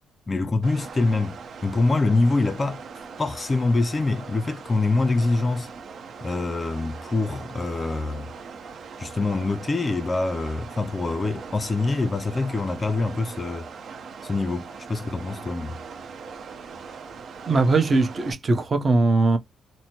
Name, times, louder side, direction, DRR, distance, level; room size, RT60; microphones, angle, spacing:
voice 1, 0.3-2.8 3.2-5.7 6.2-8.3 9.0-13.7 14.2-15.8, left 3 dB, 30° left, 0.5 m, -25 dB
sound 1, 0.6-18.3, right 5 dB, 65° right, 0.8 m, -40 dB
voice 2, 17.5-19.4, right 3 dB, 35° right, 1.0 m, -20 dB
4.0 x 2.1 x 3.0 m
cardioid pair, 85°, 0 cm